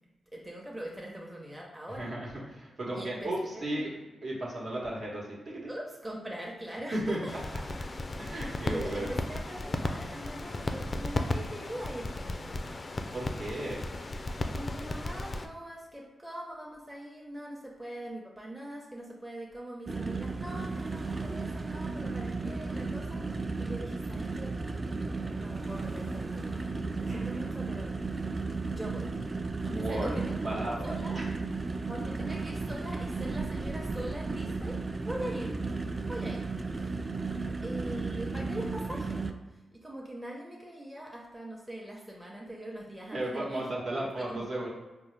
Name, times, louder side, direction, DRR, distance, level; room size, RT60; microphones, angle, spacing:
voice 1, 0.3-2.1 2.9-3.9 5.7-7.3 8.7-12.7 14.5-24.5 25.2-26.7 27.0-27.9 28.7-29.1 29.6-31.2 31.9-34.8 35.0-35.6 36.1-36.4 36.7-37.0 37.3-39.4 39.8-43.6 44.2-44.5, right 1 dB, 20° right, -2 dB, 0.8 m, -42 dB
voice 2, 2.0-3.9 4.2-5.7 6.9-7.2 8.2-9.1 13.1-13.8 27.1-27.6 29.7-30.2 30.4-31.5 43.1-44.7, right 1 dB, 65° right, -4 dB, 1.2 m, -35 dB
sound 1, 7.3-15.5, left 2 dB, 40° left, 0.3 m, -35 dB
sound 2, 19.9-39.3, right 3 dB, 35° right, 0.3 m, -34 dB
4.2 x 2.0 x 3.2 m, 1.1 s
supercardioid pair, 45°, 0 cm